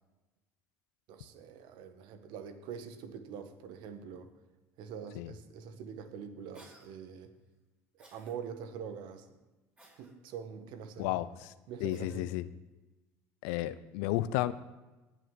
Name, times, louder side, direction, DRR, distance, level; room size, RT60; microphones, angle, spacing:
voice 1, 1.1-4.3 4.8-7.3 8.0-9.4 10.0-11.2 11.7-12.3, right 7 dB, 65° right, 8 dB, 1.7 m, -44 dB
Cough, 6.5-6.9 8.0-8.4 9.8-10.1 11.9-12.2, right 2 dB, 15° right, 5.0 m, -58 dB
voice 2, 11.0-11.5 11.8-12.5 13.4-14.5, left 15 dB, 75° left, 15 dB, 0.7 m, -32 dB
19.0 x 6.7 x 7.6 m, 1.1 s
supercardioid pair, 85°, 8 cm